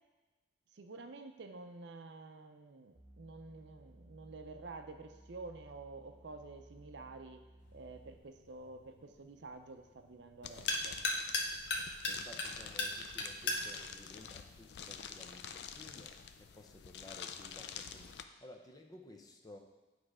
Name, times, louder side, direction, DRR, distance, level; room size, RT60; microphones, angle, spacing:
voice 1, 0.7-7.4 7.7-11.0, right 3 dB, 70° right, 7 dB, 0.5 m, -50 dB
sound 1, 2.9-8.2, right 1 dB, ahead, 1.7 m, -59 dB
sound 2, 7.6-15.2, left 2 dB, 85° left, 0.8 m, -40 dB
sound 3, 10.4-18.2, left 7 dB, 65° left, 0.4 m, -48 dB
voice 2, 12.0-19.6, left 1 dB, 20° left, 3 dB, 0.6 m, -55 dB
8.9 x 3.2 x 4.8 m, 1.2 s
head